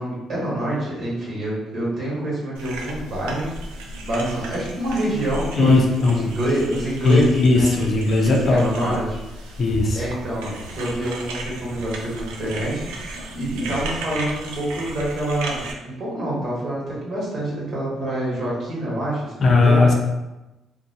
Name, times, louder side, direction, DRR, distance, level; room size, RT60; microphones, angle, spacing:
voice 1, 0.0-3.5 4.0-7.7 8.2-9.2 9.9-19.9, right 1 dB, 60° right, -6 dB, 1.2 m, -26 dB
sound 1, 2.5-15.7, right 1 dB, 85° right, 0.3 m, -34 dB
voice 2, 5.5-6.3 7.0-8.9 9.6-10.0 19.4-19.9, left 3 dB, 55° left, 0 dB, 0.5 m, -18 dB
2.5 x 2.2 x 2.6 m, 1.0 s
supercardioid pair, 60°, 0 cm